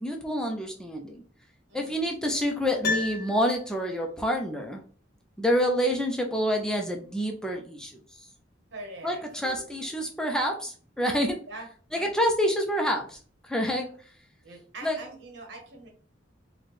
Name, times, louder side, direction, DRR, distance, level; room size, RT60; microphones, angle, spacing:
voice 1, 0.0-1.2 1.7-4.8 5.4-8.2 9.0-11.4 11.9-13.2 13.4-13.9 14.8-15.0, equal, 5° left, 2 dB, 0.4 m, -27 dB
voice 2, 1.7-2.1 8.7-9.9 11.5-12.1 13.8-13.9 14.4-15.9, right 2 dB, 75° right, 1 dB, 1.1 m, -44 dB
Piano, 2.8-4.1 4.4-4.5, left 4 dB, 55° left, 0.8 m, -32 dB
4.1 x 2.2 x 3.2 m, 0.42 s
head